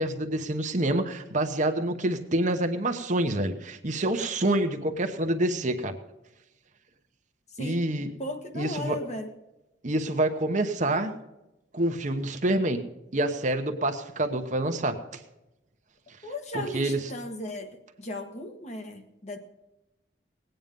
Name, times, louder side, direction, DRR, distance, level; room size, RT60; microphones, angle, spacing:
voice 1, 0.0-6.0 7.6-8.1 8.5-9.0 9.8-11.1 11.7-12.8 13.1-15.0 16.5-17.1, right 1 dB, 45° right, 6 dB, 1.1 m, -27 dB
voice 2, 8.2-9.3 16.2-19.4, left 1 dB, 40° left, 5 dB, 1.4 m, -36 dB
18.5 x 9.1 x 5.3 m, 0.97 s
head